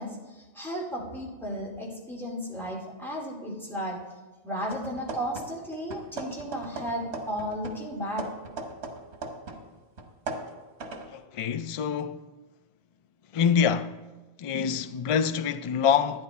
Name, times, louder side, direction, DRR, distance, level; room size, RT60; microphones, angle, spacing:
voice 1, 0.0-4.0 4.4-8.3, equal, ahead, 2.4 m, -34 dB
sound 1, 4.7-5.7 5.9-9.7 10.0-11.1, right 3 dB, 90° right, 1.3 m, -39 dB
voice 2, 11.1-12.3 13.3-14.0 14.4-16.2, left 7 dB, 60° left, 0.3 m, -26 dB
11.5 x 10.0 x 4.2 m
omnidirectional pair, 1.1 m